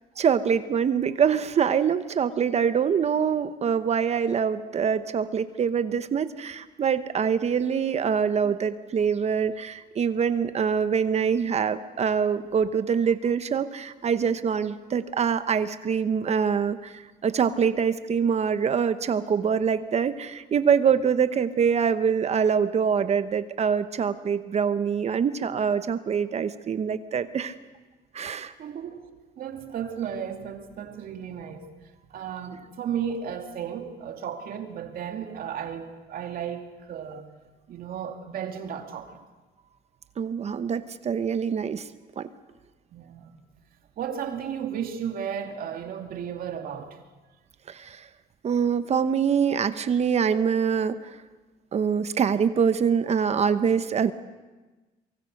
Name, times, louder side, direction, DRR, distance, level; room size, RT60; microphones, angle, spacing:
voice 1, 0.2-27.5 28.1-28.5 40.2-41.9 42.2-42.3 47.7-48.1 48.4-51.1 51.7-54.1, right 7 dB, 40° right, 1.0 m, -24 dB
voice 2, 28.6-29.1 29.4-31.7 32.1-37.3 37.7-39.2 42.9-43.4 44.0-47.0, right 8 dB, 60° right, 2.5 m, -34 dB
23.5 x 23.5 x 6.5 m
cardioid pair, 110°, 17 cm